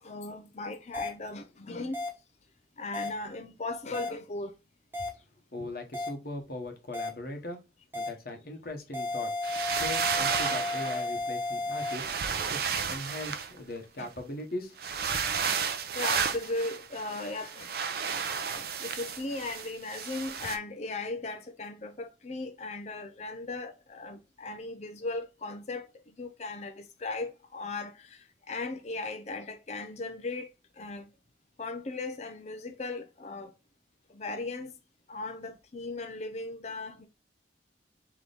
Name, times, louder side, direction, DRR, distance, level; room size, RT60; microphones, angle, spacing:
voice 1, 0.0-2.0 2.8-4.6 14.0-14.1 15.6-17.7 18.5-30.5 30.7-31.1 31.6-33.5 34.1-34.8 35.1-37.1, left 3 dB, 35° left, 0.5 m, -37 dB
sound 1, 0.9-1.1 1.9-2.1 2.9-3.1 3.9-4.1 4.9-5.1 5.9-6.1 6.9-7.1 7.9-8.1 8.9-11.9, left 2 dB, 10° right, 1.1 m, -33 dB
voice 2, 5.5-7.6 7.9-9.3 9.7-12.1 12.5-14.8, left 1 dB, 55° left, 1.0 m, -39 dB
sound 2, 9.4-11.1 11.8-14.0 14.8-20.6, right 6 dB, 55° right, 0.5 m, -32 dB
3.9 x 3.0 x 3.4 m
head